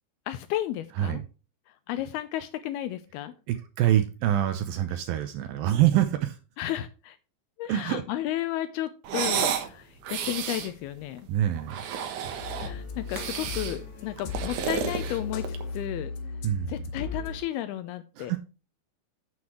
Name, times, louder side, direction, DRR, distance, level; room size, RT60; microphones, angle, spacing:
voice 1, 0.3-1.2 1.9-3.3 6.6-7.2 7.6-11.3 12.6-16.1 16.7-18.3, left 13 dB, 85° left, 2.3 m, -33 dB
voice 2, 3.5-6.4 7.7-8.0 11.3-11.8 16.4-16.9 18.2-18.4, right 12 dB, 85° right, 2.1 m, -25 dB
sound 1, 9.0-9.7 10.0-10.7 11.6-12.7 13.1-13.8 14.2-15.7, right 8 dB, 65° right, 2.0 m, -31 dB
sound 2, 12.4-17.4, left 4 dB, 70° left, 3.5 m, -36 dB
9.6 x 8.4 x 3.2 m
omnidirectional pair, 5.2 m